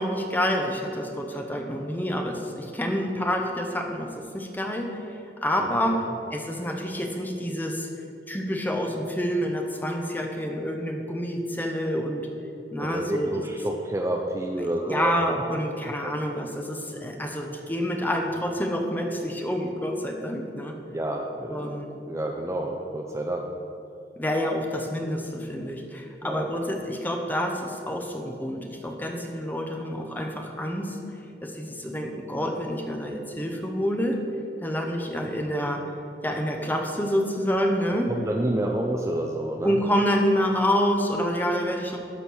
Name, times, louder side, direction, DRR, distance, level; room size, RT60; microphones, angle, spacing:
voice 1, 0.0-4.9 5.4-7.9 8.3-12.3 12.7-13.3 14.6-20.8 21.5-21.9 24.2-31.0 31.4-34.2 34.6-35.8 36.2-38.1 39.6-42.0, equal, 10° left, 2 dB, 0.8 m, -28 dB
voice 2, 5.6-6.0 12.8-15.1 15.8-16.1 20.9-21.7 22.1-23.5 26.2-26.5 38.1-39.8, right 1 dB, 15° right, 1 dB, 0.5 m, -29 dB
12.5 x 4.3 x 6.4 m, 2.6 s
head